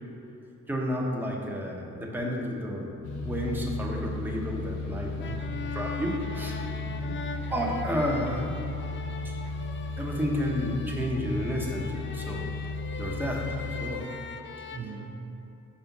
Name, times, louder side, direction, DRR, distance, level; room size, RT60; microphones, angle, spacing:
voice 1, 0.7-2.9 3.2-5.3 5.7-6.7 7.5-8.5 9.2-9.3 10.0-12.5 13.0-14.0, equal, 5° right, -2 dB, 1.2 m, -31 dB
sound 1, 3.0-13.9, left 3 dB, 75° left, 0.9 m, -35 dB
voice 2, 5.1-5.7 6.6-7.6 14.7-15.5, right 5 dB, 35° right, -3 dB, 0.8 m, -42 dB
sound 2, 5.2-14.8, left 5 dB, 40° left, 0.5 m, -41 dB
5.6 x 4.7 x 6.0 m, 2.9 s
cardioid pair, 90°, 30 cm